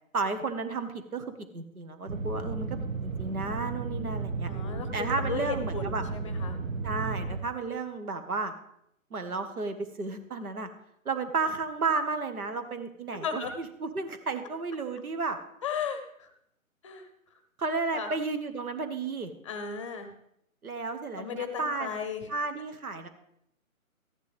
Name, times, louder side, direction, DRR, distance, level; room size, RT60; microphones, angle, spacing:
voice 1, 0.1-1.3 1.5-4.5 4.9-6.1 6.8-8.5 9.1-10.7 11.1-15.4 17.6-19.3 20.6-21.9 22.3-23.1, right 4 dB, 80° right, 8 dB, 1.7 m, -33 dB
sound 1, 2.1-7.4, right 4 dB, 65° right, 1.3 m, -34 dB
voice 2, 4.5-6.6 13.2-13.5 15.6-16.3 16.8-17.1 17.9-18.1 19.4-20.1 21.1-22.3, left 6 dB, 20° left, 8 dB, 0.7 m, -35 dB
14.0 x 10.5 x 3.5 m, 0.76 s
figure-of-eight pair, 150°, 43 cm